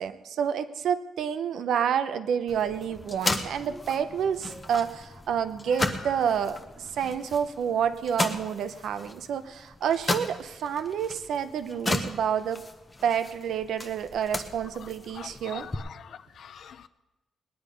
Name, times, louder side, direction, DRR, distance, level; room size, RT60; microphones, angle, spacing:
voice 1, 0.0-12.6 13.0-15.7, right 8 dB, 65° right, 11 dB, 0.7 m, -29 dB
sound 1, 2.5-15.8, left 2 dB, 15° left, 0.9 m, -35 dB
voice 2, 15.1-16.9, left 8 dB, 50° left, 14 dB, 0.5 m, -44 dB
19.5 x 10.5 x 5.2 m, 1.1 s
wide cardioid pair, 180°, 0 cm